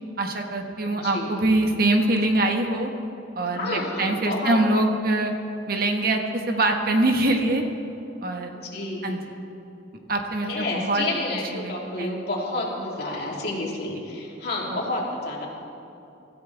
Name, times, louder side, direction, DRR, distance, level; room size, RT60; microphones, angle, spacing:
voice 1, 0.2-2.9 3.3-5.3 5.7-7.6 8.2-8.5 9.0-9.2 10.1-11.1 11.5-12.1 14.7-14.8, right 2 dB, 50° right, 3 dB, 1.4 m, -23 dB
voice 2, 0.9-1.3 3.5-4.6 8.5-9.3 10.4-15.5, left 2 dB, 55° left, -3 dB, 3.3 m, -30 dB
24.5 x 14.0 x 3.5 m, 2.9 s
head